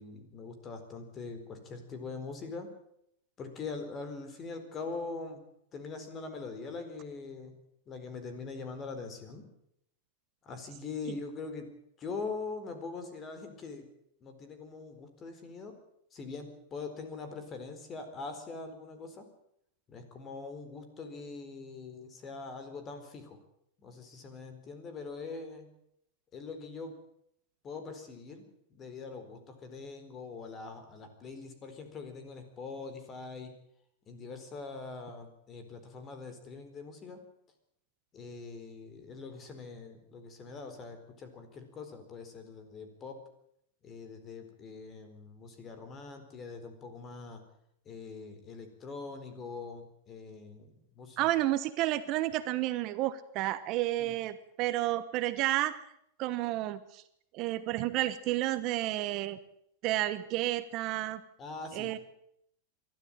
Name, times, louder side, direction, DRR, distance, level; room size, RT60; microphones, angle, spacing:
voice 1, 0.0-2.7 3.4-5.4 5.7-7.6 7.9-9.4 10.4-11.7 12.0-13.9 14.2-15.7 16.1-19.2 19.9-23.4 23.8-25.7 26.3-26.9 27.6-28.4 28.7-33.5 34.1-37.2 38.1-43.2 43.8-47.4 47.9-51.3 54.0-54.1 61.4-62.0, left 4 dB, 25° left, 8 dB, 4.4 m, -43 dB
voice 2, 51.2-55.8 56.2-57.0 57.3-59.4 59.8-61.2 61.7-62.0, right 15 dB, 45° right, 13 dB, 1.2 m, -31 dB
23.0 x 13.0 x 8.9 m, 0.74 s
supercardioid pair, 135°, 0 cm